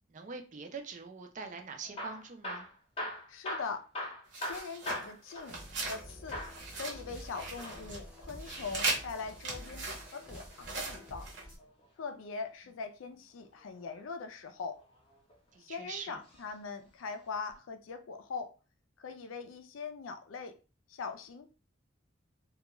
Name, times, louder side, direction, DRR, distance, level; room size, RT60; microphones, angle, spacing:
voice 1, 0.1-2.7 15.5-16.2, right 5 dB, 40° right, 0.4 m, -43 dB
Hammer / Drill, 1.8-6.0 6.3-6.6 7.4-8.9 10.6-11.9 13.6-14.0 14.7-15.6 16.3-16.5 16.8-16.9 17.5-17.6, left 1 dB, 30° left, 0.7 m, -42 dB
voice 2, 3.3-3.9 4.3-6.4 6.7-11.3 12.0-14.8 15.6-18.5 19.0-20.6 20.9-21.5, left 4 dB, 90° left, 0.4 m, -41 dB
sound 1, 4.3-6.0 6.3-8.0 8.2-11.4, right 3 dB, 65° right, 0.9 m, -39 dB
sound 2, 5.5-11.6, equal, 5° right, 0.8 m, -49 dB
2.3 x 2.2 x 2.9 m
head